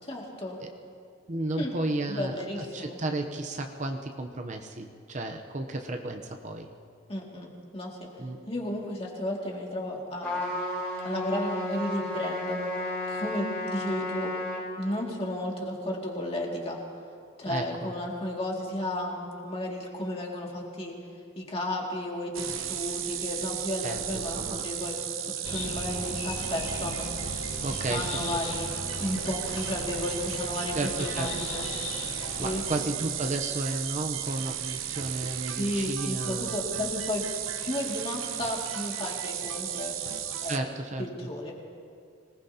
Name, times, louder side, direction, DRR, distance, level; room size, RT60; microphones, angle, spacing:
voice 1, 0.1-0.6 1.6-1.8 2.1-3.0 7.1-8.1 8.5-10.4 11.0-12.6 13.1-14.3 14.8-16.8 17.4-20.9 21.4-25.0 25.2-27.1 27.7-31.6 32.4-32.9 35.6-37.2 37.6-40.0 40.4-40.7 41.0-41.5, left 1 dB, 30° left, -2 dB, 2.3 m, -33 dB
voice 2, 1.3-6.7 8.2-8.4 17.5-17.9 23.8-24.7 27.6-28.4 30.7-31.3 32.4-36.5 40.4-41.1, right 2 dB, 35° right, 4 dB, 0.8 m, -33 dB
Trumpet, 10.2-14.7, left 1 dB, 10° left, 4.3 m, -33 dB
sound 1, 22.3-40.6, right 10 dB, 75° right, 0.9 m, -34 dB
sound 2, 25.4-32.8, left 3 dB, 75° left, 1.5 m, -38 dB
26.0 x 19.0 x 2.9 m, 2.3 s
head